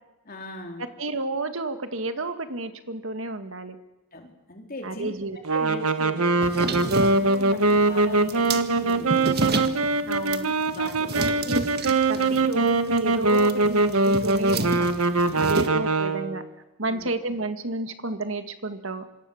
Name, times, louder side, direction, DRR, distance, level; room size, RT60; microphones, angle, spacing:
voice 1, 0.2-0.9 4.1-5.1 5.5-9.4 10.7-11.4 12.1-12.5 15.3-15.7 16.8-17.1, left 1 dB, 40° left, 2 dB, 4.0 m, -39 dB
voice 2, 1.0-3.8 4.8-5.4 10.1-10.5 11.1-11.6 12.1-14.9 15.4-16.4 16.8-19.0, right 2 dB, 65° right, 8 dB, 1.9 m, -31 dB
sound 1, 5.4-16.4, right 3 dB, 90° right, 1.5 m, -22 dB
sound 2, 6.4-15.7, right 3 dB, 45° right, 1.7 m, -31 dB
26.5 x 26.0 x 7.2 m, 1.0 s
head